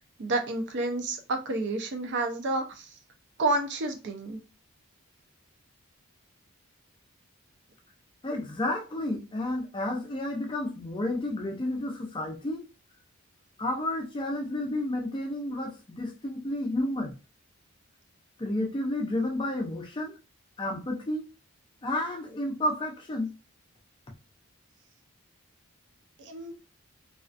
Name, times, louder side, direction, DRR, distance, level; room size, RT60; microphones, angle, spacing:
voice 1, 0.2-2.9 3.4-4.4 26.2-26.5, right 2 dB, 50° right, 0.4 m, -30 dB
voice 2, 8.2-12.6 13.6-17.1 18.4-20.1 20.6-21.2 21.8-23.3, left 1 dB, 20° left, 0.4 m, -31 dB
2.4 x 2.2 x 2.4 m
head